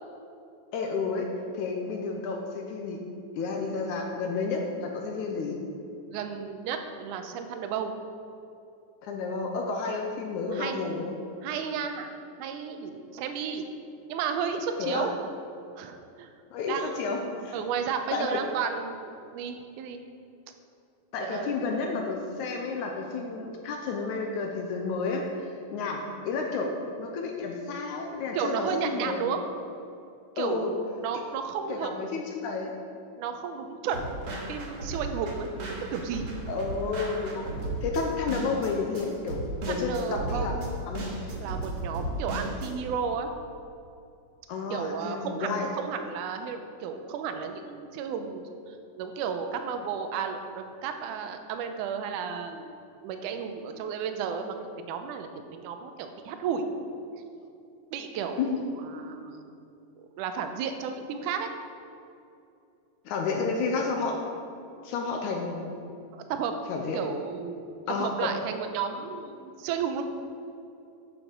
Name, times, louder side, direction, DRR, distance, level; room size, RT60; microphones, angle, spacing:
voice 1, 0.7-3.0 3.4-5.6 9.0-11.2 14.8-15.1 16.5-17.6 18.1-18.3 21.1-26.7 27.0-29.2 30.4-30.7 31.7-32.7 36.5-37.5 37.8-39.4 39.7-40.5 40.9-41.1 44.5-45.7 58.4-58.6 63.1-64.2 64.8-65.8 66.7-67.0 67.9-68.3, left 4 dB, 75° left, 2 dB, 2.0 m, -31 dB
voice 2, 6.1-7.9 10.5-10.8 11.4-12.1 12.4-13.7 14.1-15.2 15.8-16.3 16.7-17.0 17.5-20.0 21.2-21.5 28.3-29.4 30.4-31.9 33.2-36.4 39.7-40.8 41.4-43.3 44.7-52.7 53.0-56.7 57.9-59.6 60.2-61.5 66.1-66.6 66.9-67.6 68.0-70.0, right 6 dB, 80° right, 6 dB, 2.0 m, -33 dB
sound 1, 33.9-42.7, right 1 dB, 60° right, 2.4 m, -35 dB
9.0 x 7.8 x 5.1 m, 2.6 s
omnidirectional pair, 4.0 m